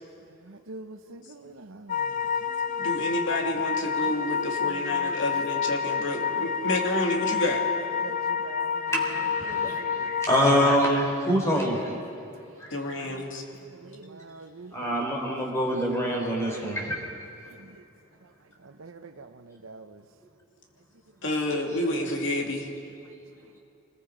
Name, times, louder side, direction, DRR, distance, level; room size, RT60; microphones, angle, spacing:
voice 1, 0.5-2.1 2.8-3.2 4.1-5.4 5.7-6.9 8.0-10.1 11.3-11.5 12.1-12.2 13.0-13.2 13.8-15.3 15.6-16.0 16.5-16.8 17.5-17.7 18.6-20.0, right 3 dB, 85° right, 7 dB, 0.8 m, -45 dB
sound 1, 1.9-10.8, left 6 dB, 40° left, 0.5 m, -29 dB
voice 2, 2.8-7.6 12.7-13.4 21.2-22.7, left 1 dB, 65° left, 0 dB, 2.9 m, -29 dB
voice 3, 8.9-11.9 12.6-12.7 14.7-17.0, equal, 15° left, -1 dB, 3.9 m, -25 dB
27.0 x 21.0 x 5.1 m, 2.5 s
head